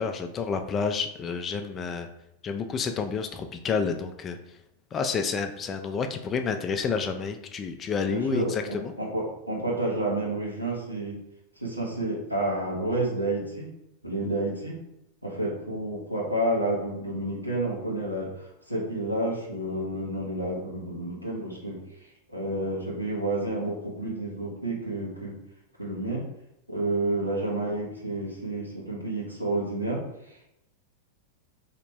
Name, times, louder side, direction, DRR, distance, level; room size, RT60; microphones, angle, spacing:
voice 1, 0.0-2.1 2.4-4.4 4.9-8.9, left 5 dB, 25° left, 7 dB, 0.3 m, -29 dB
voice 2, 8.1-11.2 11.6-13.7 14.0-14.8 15.2-21.8 22.3-25.3 25.8-26.2 26.7-30.4, right 1 dB, 90° right, -4 dB, 1.0 m, -30 dB
3.4 x 2.8 x 3.0 m, 0.84 s
figure-of-eight pair, 90°, 0 cm